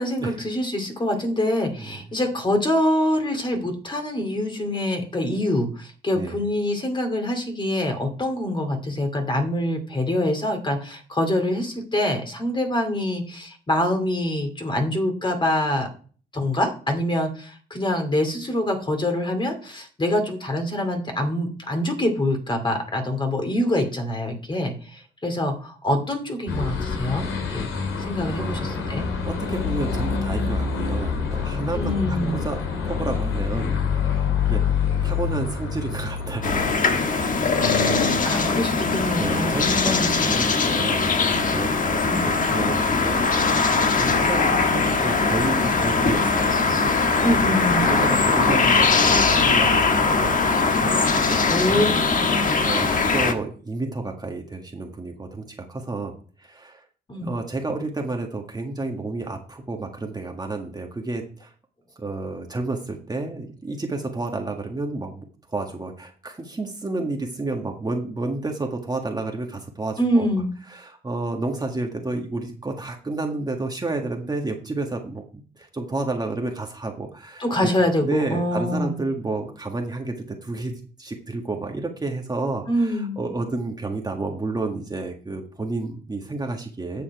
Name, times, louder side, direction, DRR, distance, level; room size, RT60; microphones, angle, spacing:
voice 1, 0.0-15.9 16.3-27.3 27.5-27.7 28.0-29.1 31.7-32.5 37.5-40.2 42.0-42.2 47.2-47.9 51.5-51.9 52.4-52.6 57.1-57.3 70.0-70.5 77.4-79.0 82.7-83.2, left 1 dB, 25° left, 5 dB, 2.4 m, -25 dB
sound 1, 26.5-36.7, left 6 dB, 80° left, 2.8 m, -26 dB
voice 2, 28.3-33.7 34.1-34.6 35.0-38.3 39.2-47.2 47.8-51.9 52.3-56.1 56.4-56.8 57.2-61.5 62.0-75.2 75.6-77.7 78.0-80.7 81.0-87.0, right 2 dB, 20° right, 2 dB, 1.7 m, -31 dB
sound 2, 36.4-53.3, left 4 dB, 40° left, 1.3 m, -21 dB
9.3 x 7.0 x 4.7 m, 0.42 s
cardioid pair, 90°, 20 cm